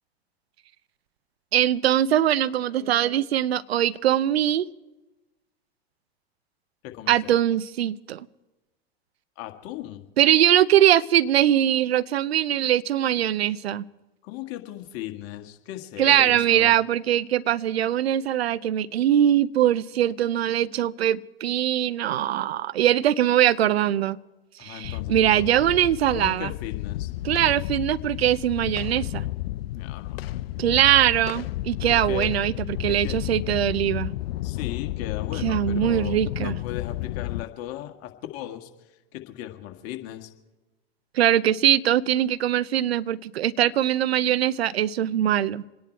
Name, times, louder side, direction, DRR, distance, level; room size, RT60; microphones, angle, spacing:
voice 1, 1.5-4.7 7.1-8.3 10.2-13.8 16.0-24.2 24.6-26.5 27.2-29.2 30.6-34.1 35.4-36.6 41.1-45.6, right 11 dB, 80° right, 0.6 m, -22 dB
voice 2, 6.8-7.3 9.4-10.0 14.2-16.7 24.6-25.5 26.1-27.1 29.7-30.2 31.9-32.3 32.9-33.2 34.4-38.7 39.1-40.3, left 13 dB, 50° left, 1.8 m, -37 dB
sound 1, 24.8-37.4, left 15 dB, 70° left, 0.7 m, -32 dB
27.0 x 10.5 x 4.5 m
hypercardioid pair, 95°, 31 cm